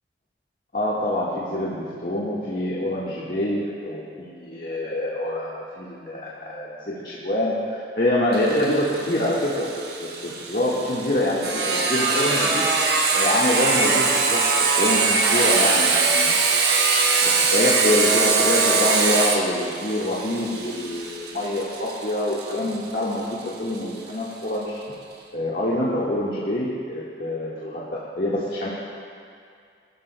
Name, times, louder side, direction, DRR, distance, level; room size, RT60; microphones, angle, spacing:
voice 1, 0.7-9.7 10.0-12.6 13.1-14.4 14.8-16.3 17.2-24.8 25.3-28.7, left 1 dB, 50° left, -7 dB, 1.6 m, -25 dB
Sawing, 8.3-23.8, right 4 dB, 65° right, 1.2 m, -22 dB
19.5 x 12.5 x 2.2 m, 2.3 s
head